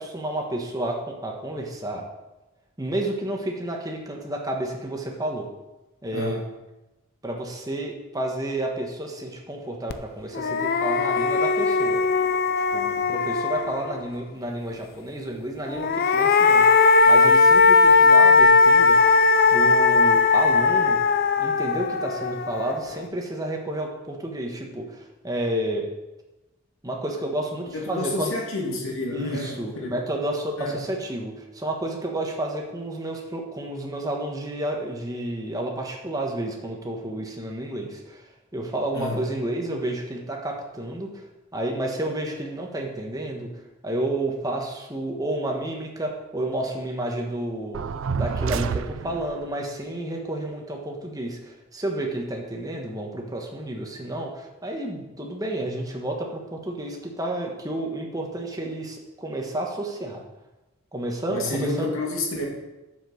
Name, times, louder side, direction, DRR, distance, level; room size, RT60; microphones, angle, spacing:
voice 1, 0.0-2.0 2.8-5.5 6.0-6.4 7.2-12.0 12.7-16.7 17.1-19.0 19.5-21.0 21.4-25.9 26.8-28.3 29.1-38.2 38.5-41.1 41.5-43.5 43.8-47.9 48.1-60.2 60.9-61.9, right 1 dB, 15° right, 1 dB, 1.4 m, -30 dB
voice 2, 6.1-6.4 27.7-30.0 30.6-30.9 38.9-39.2 61.3-62.4, left 2 dB, 75° left, -1 dB, 2.4 m, -29 dB
sound 1, 9.9-10.0 10.3-14.0 15.7-22.9, left 4 dB, 45° left, 0.5 m, -18 dB
sound 2, 47.7-49.4, right 5 dB, 70° right, 0.4 m, -28 dB
7.2 x 6.7 x 7.1 m, 1.0 s
head